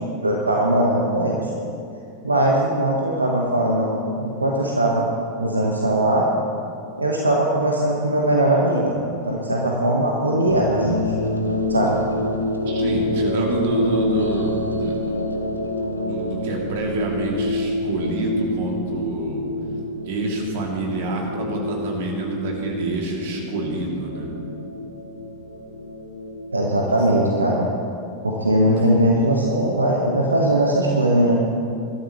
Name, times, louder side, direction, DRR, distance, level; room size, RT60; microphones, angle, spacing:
voice 1, 0.2-1.4 2.2-5.1 5.4-6.2 7.0-8.9 9.2-11.0 11.7-12.0 26.5-27.7 28.2-31.4, right 1 dB, 80° right, -1 dB, 1.3 m, -20 dB
sound 1, 10.5-26.9, left 1 dB, 80° left, 0.9 m, -27 dB
voice 2, 12.6-15.5 16.0-19.5 20.1-24.3 27.1-27.2 28.7-28.9, right 2 dB, 50° right, 0 dB, 2.7 m, -27 dB
21.5 x 12.5 x 3.2 m, 2.5 s
figure-of-eight pair, 90°, 0 cm